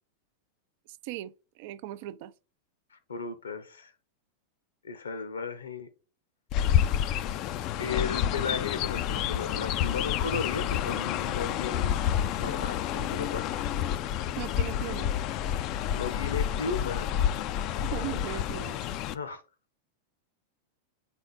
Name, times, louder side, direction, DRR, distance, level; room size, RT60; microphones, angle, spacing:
voice 1, 1.0-2.3 14.4-15.1 17.8-18.8, right 14 dB, 50° right, 0.4 m, -38 dB
voice 2, 2.9-3.9 4.8-5.9 7.8-12.0 12.4-13.5 15.9-17.2 19.1-19.4, left 5 dB, 70° left, 1.0 m, -35 dB
Chirp tweet, 6.5-19.2, left 10 dB, 40° left, 0.4 m, -29 dB
4.5 x 3.9 x 5.4 m
figure-of-eight pair, 90°, 0 cm